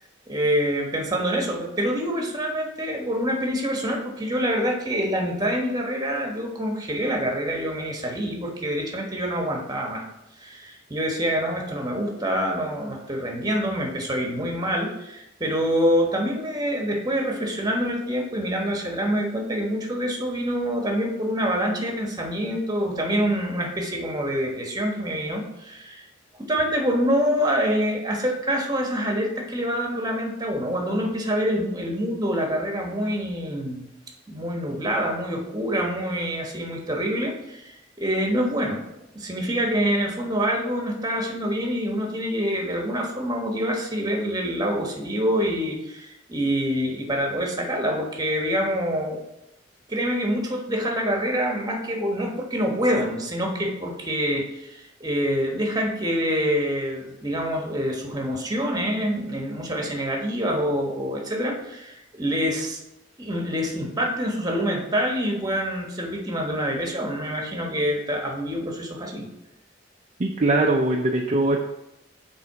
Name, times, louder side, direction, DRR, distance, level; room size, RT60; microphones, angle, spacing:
voice 1, 0.3-10.0 10.4-26.0 26.4-33.9 34.3-38.8 39.1-49.2 49.9-62.8 63.2-69.3, equal, 20° right, 1 dB, 1.2 m, -26 dB
voice 2, 70.2-71.6, right 2 dB, 35° right, 1 dB, 0.5 m, -21 dB
7.8 x 3.5 x 4.6 m, 0.88 s
head